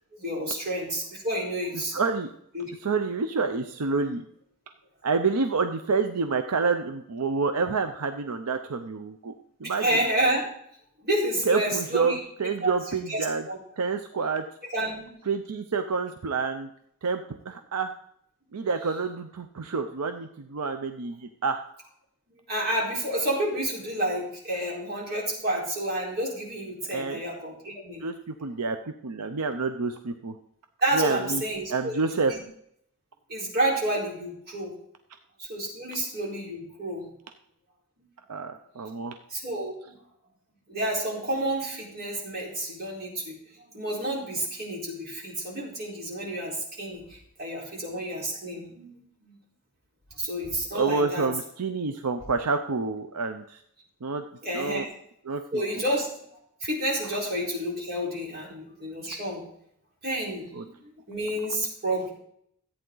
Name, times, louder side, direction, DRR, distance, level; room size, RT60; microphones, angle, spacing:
voice 1, 0.2-2.0 2.5-2.7 9.6-10.4 11.0-13.6 14.6-15.0 22.5-28.0 30.8-32.0 32.3-32.4 33.3-34.7 35.4-37.1 39.3-39.9 40.7-43.3 43.7-49.4 50.2-51.3 54.4-54.9 55.5-56.1 56.6-59.4 60.0-62.1, right 1 dB, 45° right, -4 dB, 4.3 m, -30 dB
voice 2, 1.9-2.3 2.8-4.2 5.0-9.3 9.6-9.9 11.5-12.1 12.4-13.4 13.8-14.4 15.3-16.7 17.0-17.9 18.5-21.6 26.9-27.2 28.0-30.4 30.9-31.4 31.7-32.3 38.3-39.2 50.7-53.6 54.0-54.2 54.5-54.9 55.3-55.4 55.7-55.8 60.5-60.7, right 4 dB, 90° right, 7 dB, 0.6 m, -28 dB
13.5 x 8.8 x 3.9 m, 0.70 s
head